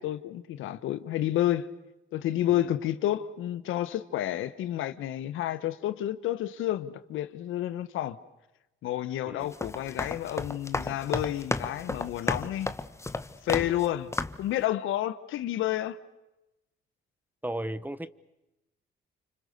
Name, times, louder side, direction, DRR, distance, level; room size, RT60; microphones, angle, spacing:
voice 1, 0.0-1.7 2.1-8.2 8.8-12.7 13.4-14.1 14.4-16.0, left 13 dB, 85° left, 1.3 m, -30 dB
sound 1, 9.4-13.9 14.1-14.5, left 2 dB, 15° left, 1.3 m, -33 dB
voice 2, 17.4-18.1, right 1 dB, 10° right, 1.2 m, -36 dB
30.0 x 26.5 x 6.8 m
cardioid pair, 90°, 20 cm